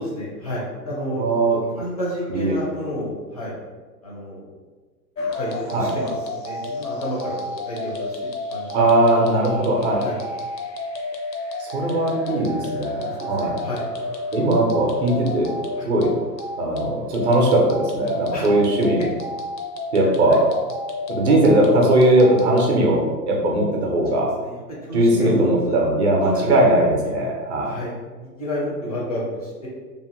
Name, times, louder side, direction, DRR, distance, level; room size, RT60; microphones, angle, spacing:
voice 1, 0.0-1.2 1.5-3.5 4.0-4.5 5.4-8.8 10.0-10.2 13.2-13.8 15.8-15.9 18.3-18.5 19.0-19.1 20.0-20.4 24.4-25.9 26.2-26.7 27.0-27.2 27.6-27.9 28.4-29.7, equal, 25° left, -5 dB, 0.4 m, -30 dB
voice 2, 1.2-1.6 2.3-2.6 5.7-5.9 8.7-10.0 11.6-13.6 14.3-15.5 15.9-16.1 16.6-19.0 19.9-20.4 21.1-24.3 24.9-27.7, right 1 dB, 40° right, -1 dB, 0.6 m, -19 dB
sound 1, 5.2-22.7, left 2 dB, 80° left, 0.7 m, -31 dB
2.7 x 2.5 x 2.5 m, 1.4 s
figure-of-eight pair, 110°, 50 cm